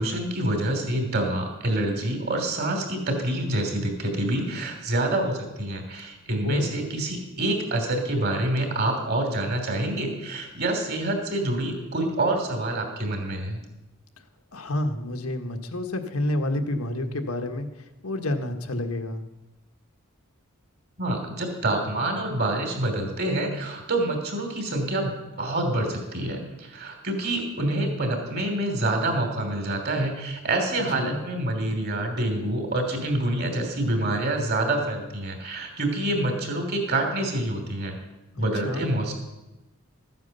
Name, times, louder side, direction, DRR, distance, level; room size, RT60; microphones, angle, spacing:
voice 1, 0.0-13.6 21.0-25.1 25.4-38.0 38.4-39.1, right 1 dB, 50° right, 4 dB, 3.1 m, -27 dB
voice 2, 6.3-6.7 14.5-17.7 18.0-19.2 30.8-31.2 38.3-38.9, left 1 dB, 90° left, 6 dB, 1.4 m, -29 dB
14.0 x 9.4 x 6.8 m, 1.0 s
head